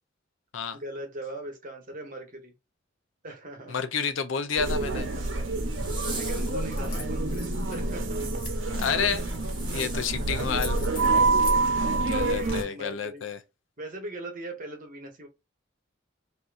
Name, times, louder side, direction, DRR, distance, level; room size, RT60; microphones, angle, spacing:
voice 1, 0.7-2.5 3.2-3.9 4.9-5.5 6.0-8.4 9.7-10.3 10.7-11.1 11.6-13.3 13.8-15.3, right 1 dB, 45° right, 1.1 m, -40 dB
voice 2, 3.7-5.1 8.8-9.2 9.7-10.8 12.1-13.4, left 6 dB, 75° left, 0.5 m, -29 dB
sound 1, 4.6-12.6, right 3 dB, 70° right, 0.9 m, -27 dB
Zipper (clothing), 4.7-12.2, right 3 dB, 25° right, 1.2 m, -42 dB
sound 2, 6.3-6.4 6.7-7.8 8.2-9.4 10.0-10.1 10.4-11.6, left 4 dB, 45° left, 1.0 m, -42 dB
3.7 x 2.7 x 2.4 m
head